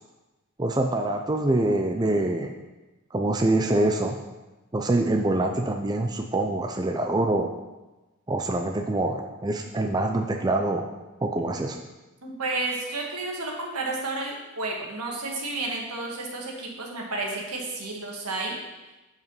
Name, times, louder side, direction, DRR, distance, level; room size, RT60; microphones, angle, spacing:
voice 1, 0.6-2.5 3.1-4.2 4.7-7.5 8.3-10.9 11.2-11.8, right 2 dB, 20° right, 3 dB, 0.4 m, -25 dB
voice 2, 12.2-18.6, right 2 dB, 85° right, -1 dB, 1.7 m, -31 dB
8.0 x 5.0 x 5.4 m, 1.1 s
head